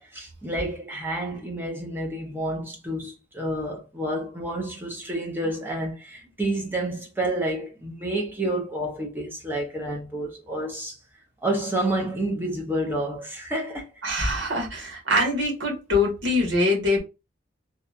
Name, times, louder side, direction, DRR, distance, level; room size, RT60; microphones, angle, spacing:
voice 1, 0.0-11.0 11.4-13.9, right 1 dB, 10° right, 0.6 m, -29 dB
voice 2, 14.0-17.0, left 2 dB, 75° right, 1.2 m, -23 dB
2.8 x 2.2 x 2.4 m
head